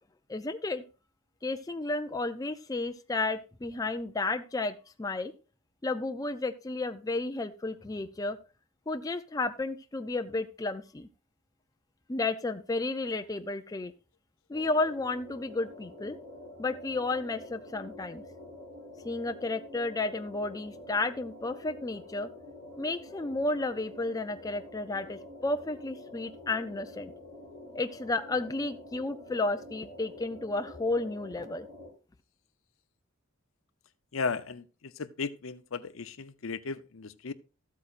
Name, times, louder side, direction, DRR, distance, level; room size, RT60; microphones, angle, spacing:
voice 1, 0.3-0.8 1.4-5.3 5.8-8.4 8.9-11.1 12.1-13.9 14.5-16.2 16.6-18.2 19.0-22.3 22.8-27.1 27.7-31.7, left 2 dB, 15° left, 0.4 m, -32 dB
sound 1, 14.5-31.9, left 1 dB, 65° right, 3.9 m, -47 dB
voice 2, 34.1-37.3, left 4 dB, 70° left, 0.6 m, -35 dB
14.0 x 8.4 x 2.5 m
head